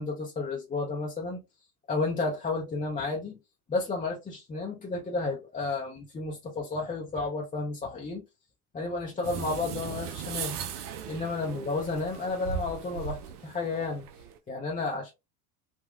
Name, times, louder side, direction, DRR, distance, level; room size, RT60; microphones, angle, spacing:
voice 1, 0.0-1.4 1.9-3.4 3.7-8.2 8.7-10.6 11.1-14.1 14.5-15.1, left 3 dB, 15° left, 0.6 m, -32 dB
sound 1, 9.2-14.4, right 7 dB, 80° right, 0.6 m, -38 dB
3.7 x 2.2 x 2.4 m
hypercardioid pair, 75°, 45 cm